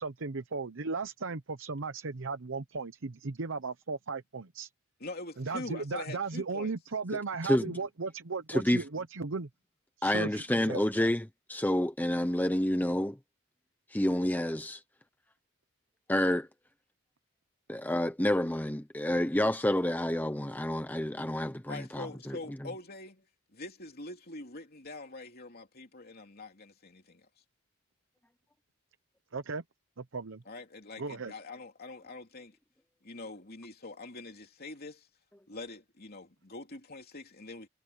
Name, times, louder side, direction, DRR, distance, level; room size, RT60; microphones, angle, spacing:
voice 1, 0.0-4.7 5.4-9.5 10.0-10.8 29.3-29.6 30.0-30.4 31.0-31.3, right 4 dB, 60° right, 0.8 m, -36 dB
voice 2, 5.0-6.7 21.7-23.3 23.5-27.3 30.4-32.6 33.0-35.1 35.5-37.7, left 2 dB, 45° left, 3.1 m, -44 dB
voice 3, 7.4-7.8 8.5-8.8 10.0-13.2 13.9-14.8 16.1-16.5 17.7-22.4, left 1 dB, 10° left, 0.8 m, -29 dB
head